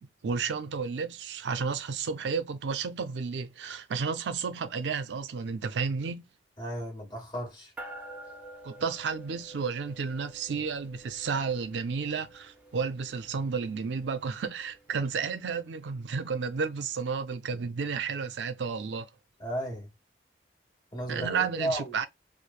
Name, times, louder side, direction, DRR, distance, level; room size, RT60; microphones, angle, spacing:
voice 1, 0.0-6.2 8.6-19.1 21.1-22.1, right 5 dB, 75° right, 0.4 m, -32 dB
voice 2, 6.6-7.7 19.4-19.9 20.9-22.0, right 1 dB, 25° left, 1.3 m, -34 dB
sound 1, 7.8-15.5, right 1 dB, 10° right, 0.5 m, -49 dB
3.1 x 2.0 x 2.3 m
head